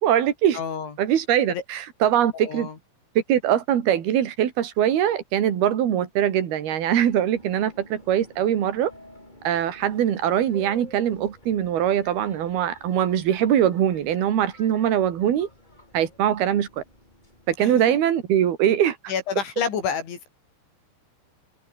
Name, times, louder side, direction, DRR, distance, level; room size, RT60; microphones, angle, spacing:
voice 1, 0.0-0.6 1.0-2.7 3.3-8.9 9.4-15.5 15.9-16.8 17.5-19.0, right 10 dB, 60° right, 4.2 m, -22 dB
voice 2, 0.5-0.9 1.5-1.6 2.3-2.8 17.6-17.7 19.1-20.3, left 6 dB, 75° left, 6.8 m, -29 dB
Subway metro underground, 6.9-17.7, left 1 dB, 10° left, 7.2 m, -50 dB
omnidirectional pair, 5.4 m